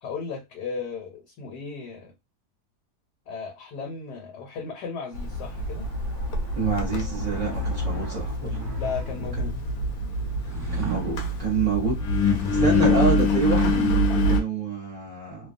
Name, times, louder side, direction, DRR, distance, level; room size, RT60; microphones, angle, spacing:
voice 1, 0.0-2.1 3.3-5.9 8.8-9.6, left 5 dB, 85° left, 1.4 m, -35 dB
Engine, 5.1-14.4, left 1 dB, 70° left, 1.1 m, -25 dB
sound 1, 5.1-9.5 10.1-13.9, right 4 dB, 15° right, 1.1 m, -39 dB
voice 2, 6.5-8.6 10.7-15.5, right 4 dB, 35° right, 0.6 m, -28 dB
2.7 x 2.3 x 2.5 m
omnidirectional pair, 1.7 m